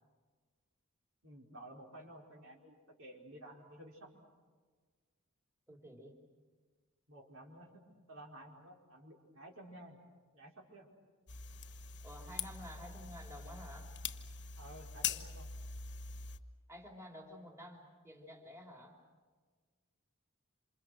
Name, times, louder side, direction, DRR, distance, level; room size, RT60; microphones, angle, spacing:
voice 1, 1.2-4.3 7.1-7.8 8.1-10.0 10.3-10.9 14.6-15.5, right 1 dB, 65° right, 0 dB, 4.8 m, -53 dB
voice 2, 5.7-6.1 12.0-13.9 16.7-19.0, equal, 15° right, 0 dB, 3.3 m, -51 dB
sound 1, 11.3-16.4, left 7 dB, 55° left, 1.3 m, -43 dB
28.0 x 27.5 x 6.4 m, 1.5 s
head